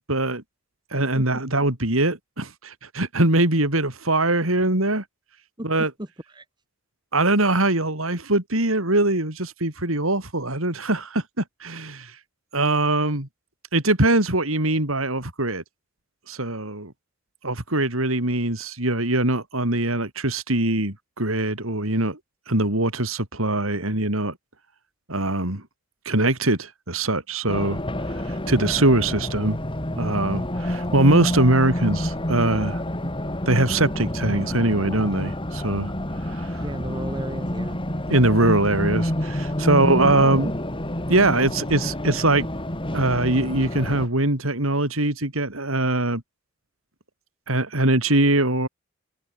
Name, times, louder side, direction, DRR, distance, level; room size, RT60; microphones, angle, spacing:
voice 1, 0.1-0.4 0.9-5.0 5.6-5.9 7.1-12.1 12.5-13.3 13.7-15.6 16.3-16.9 17.4-22.2 22.5-24.3 25.1-25.6 26.0-27.8 28.3-29.6 29.9-32.8 33.5-35.9 36.3-36.6 38.1-40.5 41.1-42.5 42.9-46.2 47.5-48.7, right 2 dB, 70° right, 4.9 m, -22 dB
Race car auto racing, 27.5-44.1, left 1 dB, 25° left, 4.5 m, -28 dB
voice 2, 36.6-37.8, right 1 dB, 20° right, 3.4 m, -35 dB
head